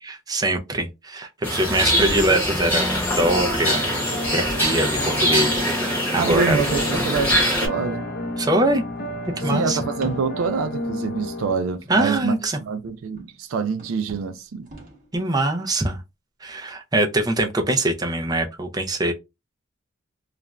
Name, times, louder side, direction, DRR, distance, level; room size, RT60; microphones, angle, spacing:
voice 1, 0.3-3.9 4.3-5.6 6.1-6.6 8.4-8.8 9.4-9.8 11.9-12.6 15.1-16.0 16.4-19.1, right 1 dB, 20° right, 0.4 m, -23 dB
sound 1, 1.4-7.7, equal, 10° left, 0.9 m, -23 dB
sound 2, 3.1-11.5, left 1 dB, 50° left, 0.6 m, -31 dB
voice 2, 6.1-8.0 9.4-12.4 12.6-14.7, right 5 dB, 80° right, 0.4 m, -26 dB
sound 3, 6.7-7.9 8.9-10.6 11.7-13.4 13.7-15.1, equal, 40° right, 0.9 m, -42 dB
2.4 x 2.2 x 3.0 m
head